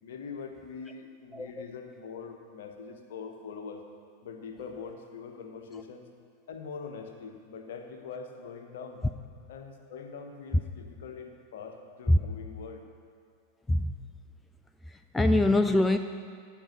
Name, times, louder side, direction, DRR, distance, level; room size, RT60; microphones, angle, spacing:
voice 1, 0.0-3.8 4.2-6.1 6.5-9.0 9.5-12.8, left 5 dB, 60° left, 5 dB, 1.1 m, -43 dB
voice 2, 1.3-1.7 12.1-12.2 13.7-13.9 14.9-16.0, left 1 dB, 10° left, 8 dB, 0.4 m, -24 dB
15.5 x 5.3 x 6.3 m, 2.1 s
figure-of-eight pair, 90°, 0 cm